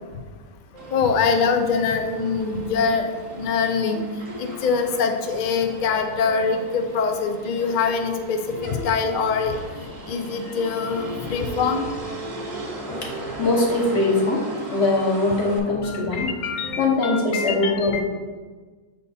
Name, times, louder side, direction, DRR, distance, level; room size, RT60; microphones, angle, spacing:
sound 1, 0.7-1.6 2.0-17.3, right 3 dB, 10° left, 0.9 m, -39 dB
Motor vehicle (road), 0.8-15.6, right 1 dB, 35° right, 0.9 m, -38 dB
voice 1, 0.9-3.1 3.4-4.0 4.4-9.6 10.1-11.8 15.8-18.0, left 5 dB, 85° left, 6 dB, 0.4 m, -24 dB
voice 2, 13.4-16.3 16.8-18.0, left 2 dB, 55° left, -1 dB, 1.4 m, -22 dB
6.7 x 3.6 x 4.1 m, 1.4 s
omnidirectional pair, 1.5 m